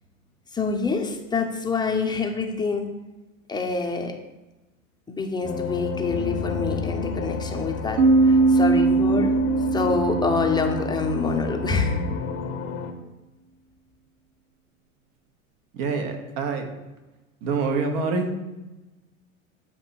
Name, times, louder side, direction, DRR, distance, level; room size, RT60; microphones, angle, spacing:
voice 1, 0.5-2.9 3.5-4.2 5.1-9.3 9.7-12.0, left 4 dB, 10° left, 3 dB, 0.7 m, -26 dB
sound 1, 5.4-12.9, left 5 dB, 35° left, 0.8 m, -31 dB
sound 2, 8.0-11.6, right 3 dB, 80° right, 0.6 m, -21 dB
voice 2, 15.7-16.7 17.4-18.3, right 4 dB, 50° right, 5 dB, 1.2 m, -26 dB
7.8 x 2.9 x 4.5 m, 1.1 s
hypercardioid pair, 85°, 42 cm